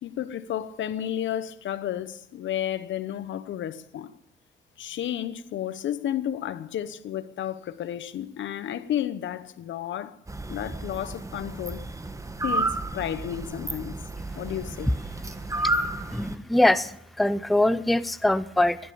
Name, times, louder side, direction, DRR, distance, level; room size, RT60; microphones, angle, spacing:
voice 1, 0.0-4.1 4.8-10.1 10.5-11.8 12.4-13.9 14.4-14.9, left 11 dB, 70° left, 1.0 m, -32 dB
sound 1, 10.3-16.4, right 2 dB, 15° right, 1.2 m, -32 dB
voice 2, 15.5-18.8, left 1 dB, ahead, 0.5 m, -23 dB
17.5 x 11.0 x 7.0 m
cardioid pair, 90°, 20 cm